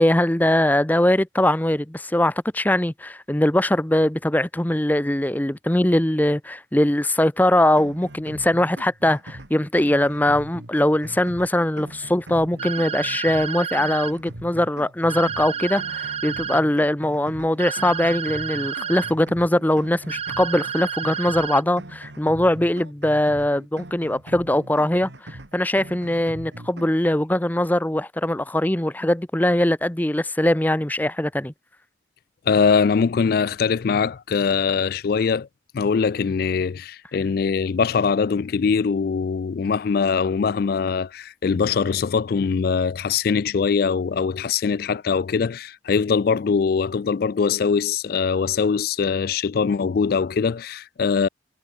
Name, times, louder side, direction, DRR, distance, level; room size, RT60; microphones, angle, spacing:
voice 1, 0.0-31.5, left 1 dB, 10° left, 0.7 m, -21 dB
sound 1, 7.6-26.9, right 1 dB, 65° right, 2.2 m, -41 dB
sound 2, 12.6-14.1 15.1-16.6 17.6-19.1 20.1-21.6, right 8 dB, 30° right, 0.6 m, -30 dB
voice 2, 32.5-35.5 35.7-51.3, left 5 dB, 50° left, 0.3 m, -22 dB
head